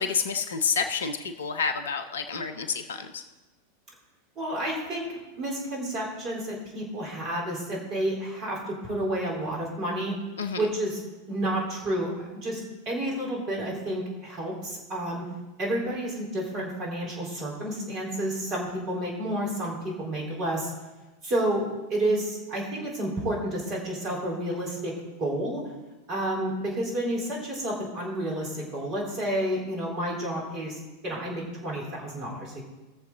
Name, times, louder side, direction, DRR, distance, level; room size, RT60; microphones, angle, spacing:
voice 1, 0.0-3.2 10.4-10.7, left 6 dB, 65° left, 8 dB, 0.9 m, -29 dB
voice 2, 4.4-10.1 10.5-11.0 11.3-12.6 12.9-15.2 15.6-20.7 21.2-24.9 25.2-25.6 26.1-32.6, right 1 dB, 35° right, -2 dB, 3.9 m, -30 dB
18.5 x 7.1 x 3.8 m, 1.1 s
figure-of-eight pair, 90°, 0 cm